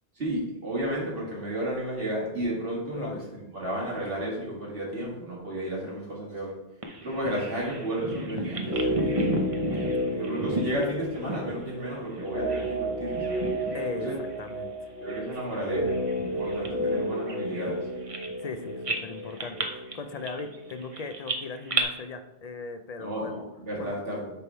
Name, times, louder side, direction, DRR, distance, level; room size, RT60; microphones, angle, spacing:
voice 1, 0.2-6.5 7.0-9.3 9.7-9.8 10.2-13.4 14.0-14.2 15.0-15.9 16.2-17.9 23.0-24.3, right 1 dB, 60° right, -5 dB, 2.2 m, -32 dB
Bird vocalization bird call bird song, 6.8-12.8 13.1-14.0 14.3-14.5 15.1-18.5 18.8-21.8, right 2 dB, 35° right, 0.8 m, -34 dB
sound 1, 8.6-20.7 20.9-21.0, equal, 80° left, 2.2 m, -32 dB
voice 2, 13.7-14.7 18.4-23.4 23.8-24.0, left 4 dB, 50° left, 8 dB, 0.5 m, -38 dB
8.3 x 3.5 x 4.4 m, 0.92 s
omnidirectional pair, 1.1 m